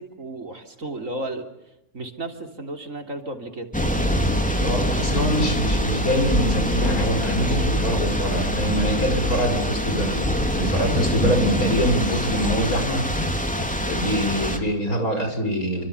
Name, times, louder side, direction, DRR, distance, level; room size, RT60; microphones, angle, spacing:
voice 1, 0.0-3.7, right 2 dB, 60° right, 5 dB, 3.8 m, -34 dB
Thunder / Rain, 3.7-14.6, equal, 5° left, 3.3 m, -24 dB
voice 2, 4.6-10.2 10.5-13.0 13.8-15.9, equal, 80° left, 6 dB, 6.1 m, -24 dB
29.0 x 25.5 x 7.1 m, 0.88 s
omnidirectional pair, 1.5 m